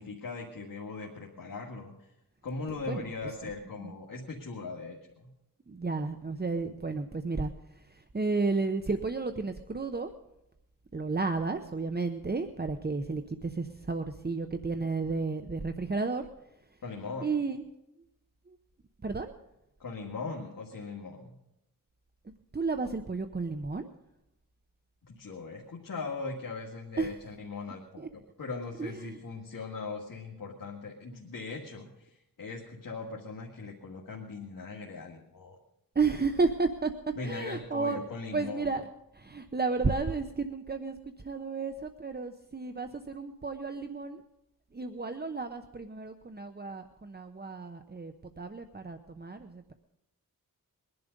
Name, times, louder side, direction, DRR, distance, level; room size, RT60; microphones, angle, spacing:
voice 1, 0.0-2.1 2.4-5.3 16.8-17.3 19.8-21.3 25.1-27.8 28.4-35.6 37.2-38.7, left 4 dB, 70° left, -1 dB, 2.0 m, -40 dB
voice 2, 2.7-3.5 3.8-3.9 4.6-4.7 5.7-10.1 10.9-16.3 16.7-16.8 17.2-17.6 18.5-18.6 19.0-19.3 22.2-23.9 27.0-27.2 28.0-28.1 28.8-29.2 35.9-36.9 37.2-38.0 38.3-38.9 39.1-44.2 44.7-49.7, right 4 dB, 30° right, 7 dB, 0.9 m, -32 dB
21.5 x 11.0 x 5.3 m, 0.86 s
wide cardioid pair, 85°, 34 cm